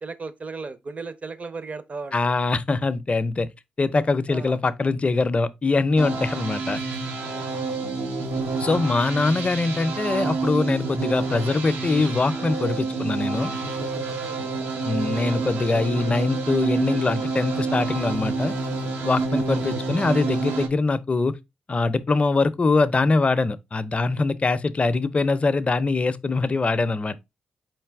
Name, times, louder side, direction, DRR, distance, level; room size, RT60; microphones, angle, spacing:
voice 1, 0.0-2.2 4.3-4.6 7.2-7.4 14.2-14.7, right 4 dB, 40° right, 0.6 m, -36 dB
voice 2, 2.1-3.5 3.8-6.8 8.6-13.5 14.8-18.5 19.0-21.4 21.7-27.2, left 3 dB, 35° left, 0.5 m, -23 dB
sound 1, 6.0-20.7, right 3 dB, 85° right, 0.8 m, -28 dB
4.3 x 3.3 x 3.4 m
supercardioid pair, 55°, 4 cm